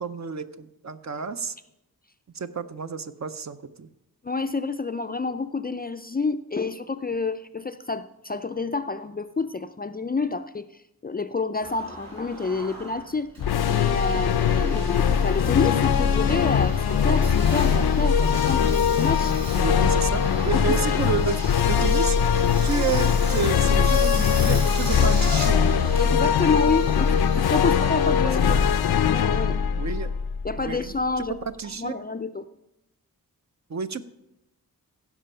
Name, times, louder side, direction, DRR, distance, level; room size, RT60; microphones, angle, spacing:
voice 1, 0.0-1.6 2.3-3.9 19.5-22.2 22.6-25.6 27.7-27.8 29.8-30.2 30.5-31.2 31.6-32.0 33.7-34.0, right 5 dB, 50° right, 11 dB, 0.6 m, -30 dB
voice 2, 4.2-10.7 11.0-13.3 13.7-19.3 20.5-20.8 26.0-28.6 29.1-29.6 30.4-31.4 31.8-32.4, left 4 dB, 25° left, 10 dB, 0.4 m, -28 dB
Engine, 11.6-30.0, right 1 dB, 75° right, 4.2 m, -39 dB
sound 1, 13.4-30.8, left 7 dB, 90° left, 0.5 m, -21 dB
15.5 x 6.0 x 5.5 m, 0.88 s
wide cardioid pair, 110°, 37 cm